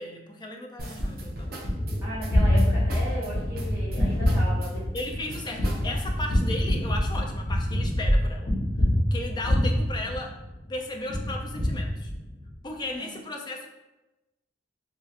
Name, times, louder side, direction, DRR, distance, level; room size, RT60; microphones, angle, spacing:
voice 1, 0.0-1.6 4.9-8.5 9.1-10.3 10.7-12.1 12.6-13.7, left 2 dB, 25° left, 2 dB, 0.3 m, -35 dB
sound 1, 0.8-6.3, right 1 dB, 55° right, 0.5 m, -39 dB
Gunshot gunfire, 1.0-10.7 11.1-12.5, equal, 45° left, 0.8 m, -25 dB
voice 2, 2.0-4.8 13.0-13.2, equal, 15° right, -11 dB, 1.0 m, -36 dB
3.0 x 2.7 x 2.3 m, 1.0 s
head